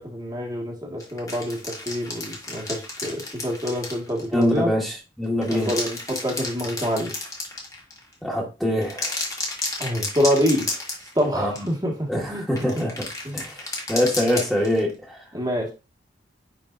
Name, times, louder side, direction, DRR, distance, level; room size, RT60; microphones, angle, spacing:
voice 1, 0.0-4.7 5.5-7.1 9.8-10.7 11.2-12.4 12.8-12.9 13.2-13.5 15.3-15.7, equal, 20° right, 0 dB, 1.8 m, -26 dB
sound 1, 1.0-4.6 5.2-8.1 8.8-11.3 11.6-11.7 12.6-14.9, left 2 dB, 20° left, 1.8 m, -32 dB
voice 2, 4.3-5.7 8.2-9.1 11.4-11.7 12.1-13.0 13.3-13.6 13.9-15.2, equal, ahead, -2 dB, 1.7 m, -24 dB
9.8 x 4.4 x 2.6 m, 0.29 s
head